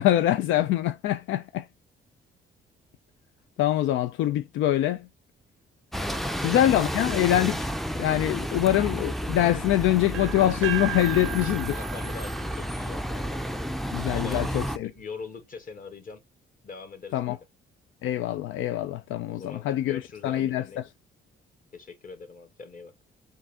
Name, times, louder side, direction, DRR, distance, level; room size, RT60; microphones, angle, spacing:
voice 1, 0.0-1.6 3.6-5.1 6.4-7.7 8.0-11.8 13.9-14.9 17.1-17.3 18.0-20.6, left 13 dB, 80° left, 0.4 m, -24 dB
Bus, 5.9-14.8, equal, ahead, 0.4 m, -31 dB
voice 2, 6.0-7.0 8.5-8.6 8.9-9.0 11.7-13.7 14.1-16.2 16.6-17.4 19.3-20.8 21.7-22.9, left 4 dB, 45° left, 1.6 m, -43 dB
sound 1, 10.1-14.0, right 15 dB, 80° right, 0.5 m, -37 dB
5.1 x 2.7 x 3.4 m
cardioid pair, 90°, 20 cm